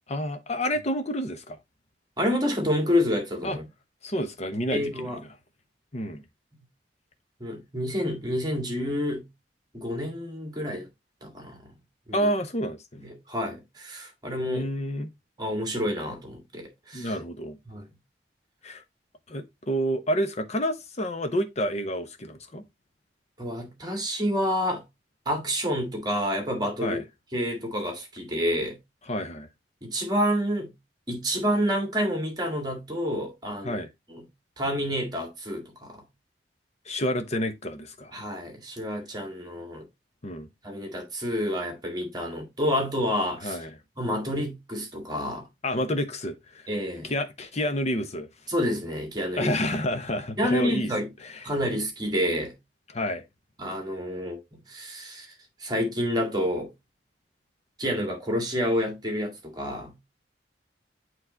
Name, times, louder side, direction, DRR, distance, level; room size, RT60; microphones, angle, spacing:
voice 1, 0.1-1.6 3.4-3.6 4.0-5.1 5.9-6.2 12.1-13.0 14.4-15.1 16.9-17.6 18.6-18.8 19.3-22.6 26.8-27.0 29.1-29.5 33.6-33.9 36.9-38.1 40.2-40.5 43.4-43.7 45.6-46.7 47.0-48.3 49.4-50.9 52.9-53.2, equal, 40° left, 0.9 m, -29 dB
voice 2, 2.2-3.7 4.7-5.2 6.5-6.6 7.4-9.3 9.7-10.9 11.2-11.7 12.1-12.3 13.0-14.7 15.4-17.1 17.7-17.9 23.4-24.8 25.3-27.0 27.3-28.8 29.8-30.7 31.1-33.8 34.1-34.2 34.6-36.0 38.1-39.9 40.6-43.6 44.0-45.5 46.7-47.1 48.5-49.6 50.4-51.1 51.4-52.6 53.6-55.3 55.6-56.7 57.8-60.0, equal, 25° right, 2.0 m, -29 dB
8.5 x 3.2 x 3.9 m
head